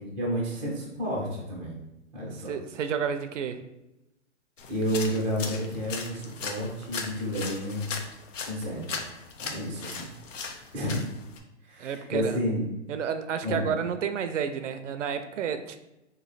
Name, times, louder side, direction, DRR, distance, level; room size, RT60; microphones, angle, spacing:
voice 1, 0.0-1.8 2.1-2.5 4.7-8.0 8.5-9.0 9.4-10.1 10.7-11.0 11.6-12.7 13.4-13.7, equal, 5° right, -6 dB, 0.4 m, -31 dB
voice 2, 2.5-3.6 10.8-10.9 11.8-12.4 12.9-15.8, right 7 dB, 70° right, 9 dB, 0.5 m, -31 dB
sound 1, 4.6-11.4, left 5 dB, 75° left, 0.7 m, -38 dB
3.1 x 2.6 x 4.0 m, 0.93 s
hypercardioid pair, 140°, 38 cm